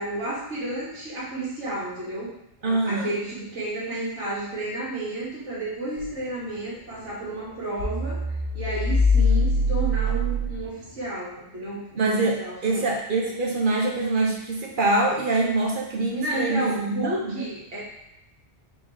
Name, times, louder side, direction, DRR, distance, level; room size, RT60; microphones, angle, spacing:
voice 1, 0.0-2.3 2.8-8.2 8.5-12.9 16.1-17.8, right 2 dB, 80° right, -7 dB, 1.9 m, -31 dB
voice 2, 2.6-3.1 12.0-17.4, right 2 dB, 50° right, -1 dB, 0.8 m, -24 dB
sound 1, 6.0-6.3 6.9-7.1 7.4-7.5 7.8-11.0, left 2 dB, 45° left, 1.4 m, -23 dB
3.9 x 3.1 x 3.8 m, 0.86 s
omnidirectional pair, 1.2 m